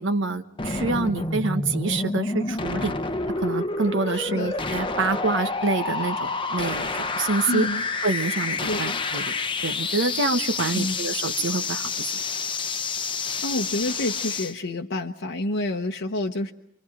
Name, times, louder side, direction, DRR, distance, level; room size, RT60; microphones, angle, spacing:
voice 1, 0.0-2.9 3.4-7.7 8.0-9.3 9.6-12.1, right 3 dB, 65° right, 9 dB, 1.3 m, -27 dB
sound 1, 0.6-14.5, left 3 dB, 25° left, 0.9 m, -28 dB
voice 2, 7.5-7.8 8.7-9.0 10.7-10.9 13.4-16.5, left 1 dB, 65° left, 1 dB, 1.0 m, -28 dB
27.5 x 25.0 x 5.0 m, 0.78 s
head